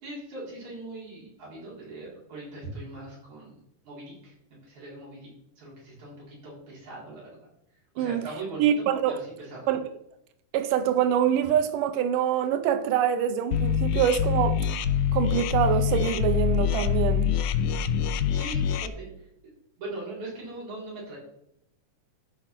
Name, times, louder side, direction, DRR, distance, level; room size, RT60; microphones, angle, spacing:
voice 1, 0.0-3.6 3.9-5.3 5.6-7.5 7.9-9.7 18.3-19.1 19.8-21.2, right 2 dB, 60° right, 5.6 m, -40 dB
voice 2, 8.6-9.2 9.7-9.9 10.5-14.6 15.1-17.3, right 9 dB, 90° right, 2.3 m, -25 dB
sound 1, 13.5-18.9, left 8 dB, 80° left, 2.0 m, -25 dB
13.5 x 5.0 x 5.8 m
omnidirectional pair, 3.7 m